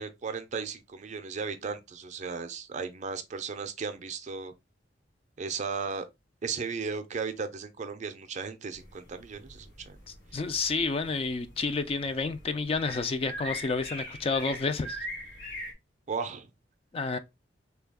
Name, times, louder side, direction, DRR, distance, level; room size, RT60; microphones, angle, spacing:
voice 1, 0.0-4.5 5.4-6.1 6.4-10.0 16.1-16.5, right 5 dB, 40° right, 0.5 m, -35 dB
sound 1, 8.8-15.7, equal, 80° left, 1.7 m, -42 dB
voice 2, 10.3-15.0 16.9-17.2, left 4 dB, 30° left, 0.3 m, -30 dB
3.3 x 2.3 x 3.5 m
head